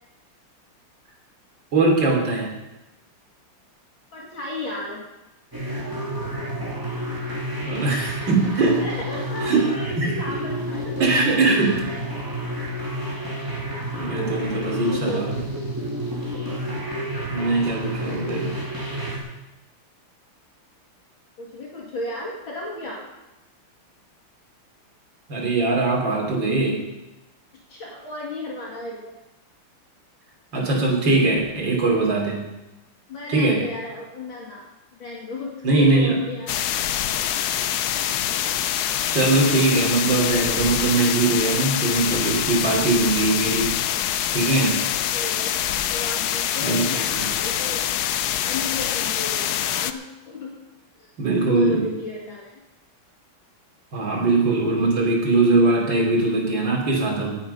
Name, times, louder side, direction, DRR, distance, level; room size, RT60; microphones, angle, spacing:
voice 1, 1.7-2.5 7.6-8.9 9.4-10.1 11.0-11.9 14.0-15.4 17.3-18.5 25.3-26.8 30.5-32.4 33.3-33.6 35.6-36.2 39.1-43.8 44.3-44.8 46.6-47.3 51.2-51.9 53.9-57.4, right 3 dB, 55° right, -1 dB, 3.8 m, -21 dB
voice 2, 4.1-5.0 8.8-10.9 14.5-15.3 21.4-23.0 27.7-29.1 33.1-34.6 34.9-36.7 44.8-45.5 45.9-47.9 48.5-50.5 51.0-51.1 51.5-52.6, left 2 dB, 65° left, -4 dB, 3.1 m, -34 dB
sound 1, 5.5-19.2, equal, 10° right, 2.8 m, -30 dB
sound 2, 36.5-49.9, left 11 dB, 80° left, 0.8 m, -25 dB
18.0 x 7.8 x 5.6 m, 0.98 s
omnidirectional pair, 2.4 m